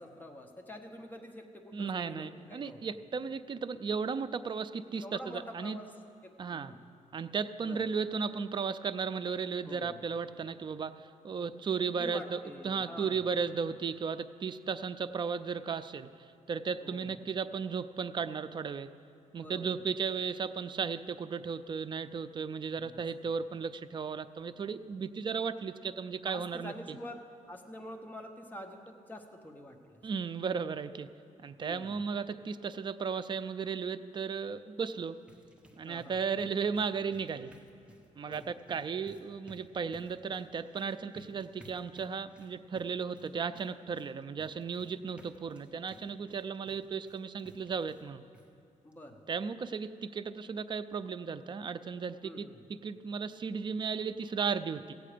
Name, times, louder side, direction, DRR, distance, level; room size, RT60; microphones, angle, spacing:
voice 1, 0.0-2.8 5.0-5.9 6.2-6.8 7.6-7.8 9.6-10.0 11.8-13.3 16.8-17.2 19.4-19.7 22.8-23.0 26.3-30.0 31.6-32.0 35.9-36.2 38.3-38.5 48.8-49.2 52.2-52.6, left 1 dB, 15° left, 3 dB, 1.0 m, -47 dB
voice 2, 1.7-5.8 6.4-6.7 7.1-18.9 19.3-27.0 30.0-31.1 31.4-35.2 35.8-37.5 38.1-48.3 49.3-54.9, right 5 dB, 35° right, 12 dB, 0.4 m, -35 dB
sound 1, 34.9-48.1 48.3-48.5 48.9-49.0 49.3-49.4, equal, 10° right, 1.1 m, -58 dB
15.5 x 8.4 x 5.0 m, 2.4 s
cardioid pair, 115°, 13 cm